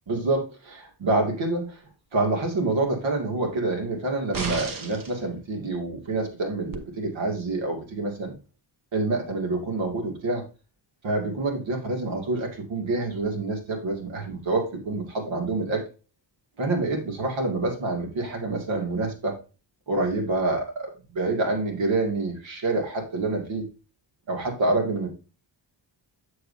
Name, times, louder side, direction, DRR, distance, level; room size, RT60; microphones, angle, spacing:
voice 1, 0.1-1.8 2.1-8.3 8.9-10.4 11.0-15.8 16.6-19.4 19.9-23.7 24.3-25.1, right 2 dB, 75° right, 1 dB, 2.4 m, -27 dB
sound 1, 4.3-5.2 6.7-6.8, right 4 dB, 45° right, 1.1 m, -32 dB
7.8 x 6.9 x 2.7 m, 0.32 s
cardioid pair, 110°, 46 cm